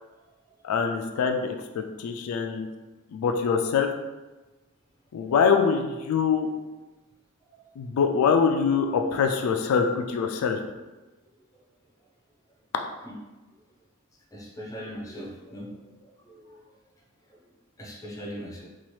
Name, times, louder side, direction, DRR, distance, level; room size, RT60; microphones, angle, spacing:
voice 1, 0.6-2.7 3.1-3.9 5.1-6.5 7.8-10.6, left 6 dB, 85° left, 5 dB, 0.3 m, -24 dB
voice 2, 14.3-16.0 16.3-16.8 17.3-17.4 17.8-18.7, equal, 15° left, -2 dB, 0.5 m, -40 dB
2.8 x 2.4 x 3.1 m, 1.1 s
head